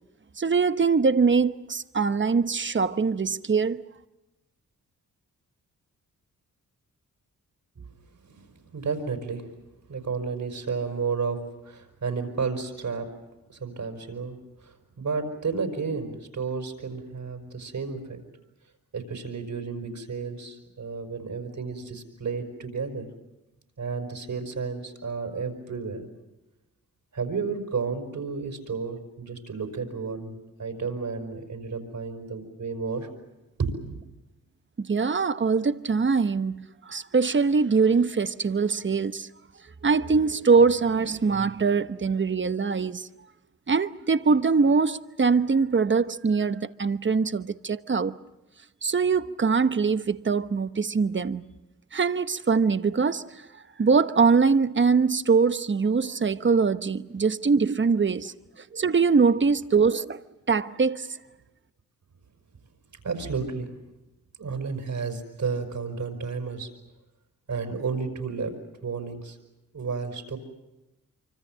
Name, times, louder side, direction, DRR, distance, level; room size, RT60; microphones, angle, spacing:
voice 1, 0.4-3.8 34.8-39.3 39.8-43.1 43.7-48.2 48.8-51.5 51.9-53.4 53.8-58.3 58.7-60.2 60.5-61.2, right 5 dB, 35° right, 1.1 m, -23 dB
voice 2, 8.2-9.5 9.9-13.1 13.5-18.2 18.9-23.1 23.8-26.1 27.1-33.1 33.6-34.0 57.2-57.3 63.0-63.7 64.4-66.7 67.5-68.5 68.8-69.4 69.7-70.4, right 5 dB, 60° right, 5.4 m, -32 dB
25.5 x 25.0 x 7.5 m
cardioid pair, 55°, 34 cm